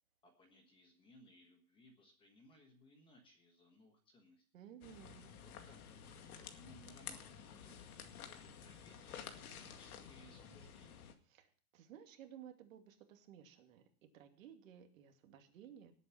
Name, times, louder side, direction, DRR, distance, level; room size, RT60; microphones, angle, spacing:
voice 1, 0.2-4.4 5.4-11.0, left 1 dB, 10° left, 3 dB, 1.4 m, -64 dB
voice 2, 4.5-5.3 11.3-13.8 14.1-15.9, right 9 dB, 50° right, 5 dB, 2.4 m, -57 dB
sound 1, 4.8-11.1, left 7 dB, 60° left, 2.2 m, -52 dB
18.5 x 8.3 x 5.8 m, 0.43 s
supercardioid pair, 175°, 49 cm